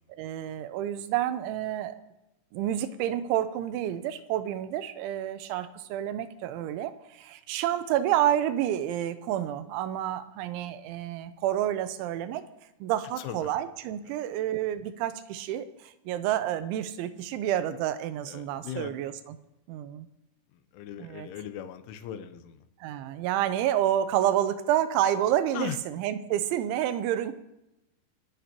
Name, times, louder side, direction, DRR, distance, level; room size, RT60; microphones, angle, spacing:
voice 1, 0.1-2.0 2.5-12.4 12.8-19.4 19.7-20.1 21.0-21.3 22.8-27.3, right 11 dB, 80° right, 11 dB, 2.9 m, -29 dB
voice 2, 13.2-13.5 18.3-18.9 20.7-22.6 25.5-25.8, left 9 dB, 80° left, 10 dB, 3.2 m, -38 dB
28.0 x 10.5 x 2.9 m, 0.91 s
omnidirectional pair, 5.7 m